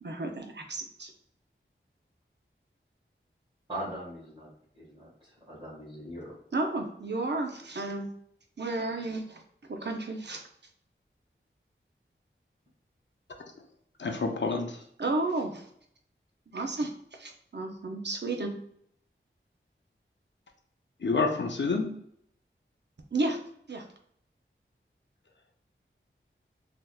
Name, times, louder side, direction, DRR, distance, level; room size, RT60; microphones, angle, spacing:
voice 1, 0.0-1.1 6.5-8.1 8.6-9.4 9.7-10.5 15.0-15.7 16.5-18.6 23.1-23.4 23.7-23.8, right 2 dB, 55° right, 3 dB, 0.6 m, -32 dB
voice 2, 3.7-4.5 4.7-6.3, right 1 dB, 25° right, -9 dB, 1.5 m, -40 dB
voice 3, 14.0-14.8 21.0-21.9, left 4 dB, 60° left, 3 dB, 0.6 m, -28 dB
3.5 x 2.8 x 2.3 m, 0.68 s
wide cardioid pair, 40°, 21 cm